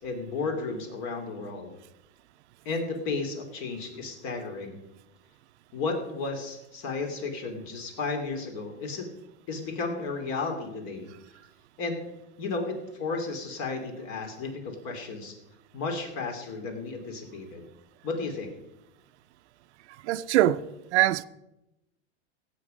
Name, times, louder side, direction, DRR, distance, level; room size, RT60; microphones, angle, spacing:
voice 1, 0.0-1.7 2.6-4.8 5.7-9.1 9.5-11.1 11.8-12.0 12.4-15.3 15.7-17.6 18.0-18.5, left 3 dB, 50° left, 2.9 m, -33 dB
voice 2, 20.0-21.2, right 14 dB, 70° right, 0.7 m, -23 dB
16.5 x 7.4 x 5.2 m
supercardioid pair, 135°, 35 cm